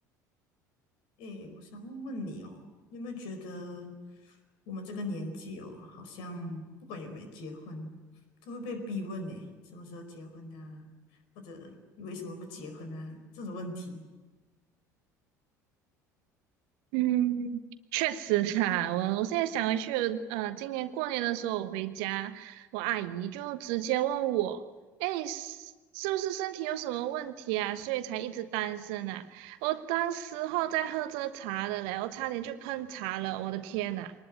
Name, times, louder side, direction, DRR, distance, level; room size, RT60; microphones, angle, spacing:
voice 1, 1.2-3.9 4.2-4.4 4.7-6.6 6.9-7.9 8.4-10.9 11.3-14.0, left 1 dB, 60° left, 7 dB, 4.7 m, -40 dB
voice 2, 16.9-24.6 25.0-34.1, right 13 dB, 60° right, 12 dB, 1.2 m, -31 dB
24.0 x 20.0 x 9.2 m, 1.3 s
figure-of-eight pair, 65°, 10 cm